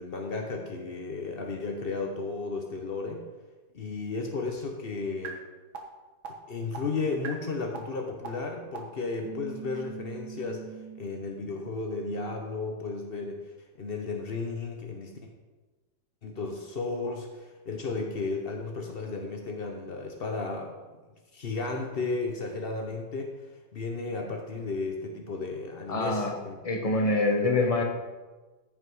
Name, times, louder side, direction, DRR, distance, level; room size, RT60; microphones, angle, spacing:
voice 1, 0.0-3.2 3.7-5.4 6.5-10.6 11.0-13.4 13.8-15.2 16.2-20.7 21.3-23.3 23.7-26.6, left 3 dB, 85° left, 2 dB, 0.5 m, -34 dB
sound 1, 5.2-5.3 5.7-5.8 6.2-6.3 6.7-6.8 7.2-7.3 7.7-7.8 8.2-8.3 8.7-8.8 9.2-11.0, right 8 dB, 65° right, 2.0 m, -40 dB
voice 2, 25.9-26.3 26.6-27.8, left 2 dB, 25° left, 2 dB, 0.9 m, -25 dB
14.0 x 5.7 x 4.8 m, 1.2 s
omnidirectional pair, 2.4 m